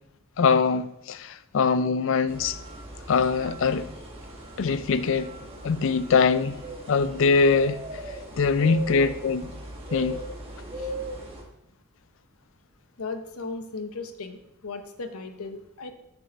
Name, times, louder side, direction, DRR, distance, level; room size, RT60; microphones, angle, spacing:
voice 1, 0.4-2.6 3.1-3.9 4.6-5.3 5.6-6.6 6.9-7.8 8.4-9.5 9.9-10.2, left 5 dB, 60° left, 0.4 m, -22 dB
sound 1, 2.3-11.4, right 1 dB, 25° right, 1.2 m, -38 dB
voice 2, 13.0-14.4 14.6-15.9, left 3 dB, 80° left, 0.8 m, -36 dB
6.6 x 6.2 x 4.0 m
head